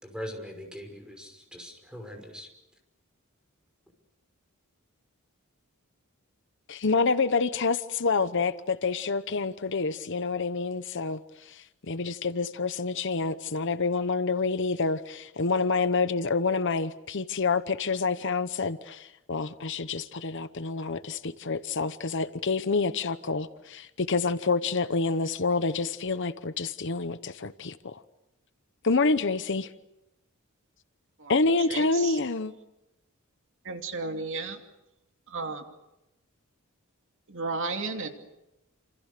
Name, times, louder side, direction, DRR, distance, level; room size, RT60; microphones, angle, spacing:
voice 1, 0.0-2.5, equal, 5° right, 5.8 m, -41 dB
voice 2, 6.7-28.0 28.8-29.7 31.3-32.5, left 4 dB, 55° left, 0.9 m, -28 dB
voice 3, 31.6-32.2 33.6-34.6 35.3-35.6 37.3-38.1, right 3 dB, 60° right, 2.7 m, -33 dB
29.0 x 27.5 x 6.7 m
head